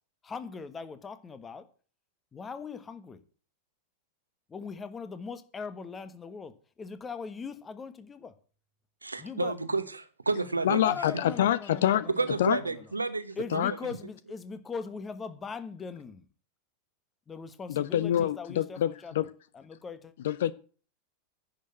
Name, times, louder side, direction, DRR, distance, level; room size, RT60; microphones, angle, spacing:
voice 1, 0.2-1.6 2.3-3.2 4.5-8.3 9.2-9.5 10.8-12.8 13.4-16.2 17.3-19.3 19.5-20.1, left 5 dB, 20° left, 1.3 m, -40 dB
voice 2, 9.0-10.8 12.1-13.6, right 3 dB, 80° right, 1.1 m, -31 dB
voice 3, 10.6-12.1 12.4-12.6 13.5-13.7 17.7-19.3 20.2-20.5, left 11 dB, 60° left, 0.5 m, -26 dB
10.5 x 6.6 x 9.1 m
figure-of-eight pair, 90°, 0 cm